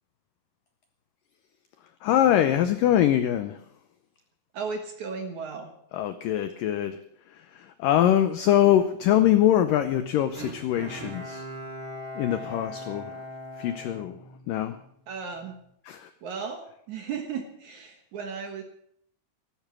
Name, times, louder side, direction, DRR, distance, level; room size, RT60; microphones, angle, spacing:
voice 1, 2.0-3.6 5.9-7.0 7.3-11.4 12.2-13.2 13.6-14.2 14.5-14.8 15.9-16.1, left 11 dB, 85° left, 10 dB, 1.9 m, -23 dB
voice 2, 4.5-5.7 12.4-12.6 15.1-15.6 16.2-18.6, right 5 dB, 60° right, 5 dB, 2.1 m, -35 dB
Bowed string instrument, 10.3-14.8 15.3-15.4, equal, 25° right, 2.1 m, -40 dB
14.0 x 13.5 x 6.2 m, 0.70 s
omnidirectional pair, 4.9 m